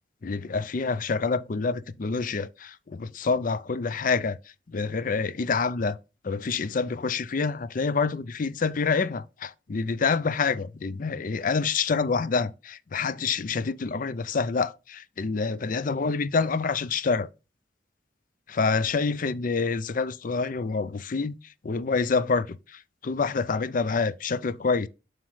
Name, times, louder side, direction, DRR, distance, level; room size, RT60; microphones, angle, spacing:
voice 1, 0.2-4.4 4.7-6.0 6.2-17.3 18.6-21.3 21.6-22.6 23.0-24.9, left 4 dB, 45° left, 0.5 m, -27 dB
7.5 x 5.0 x 3.1 m
head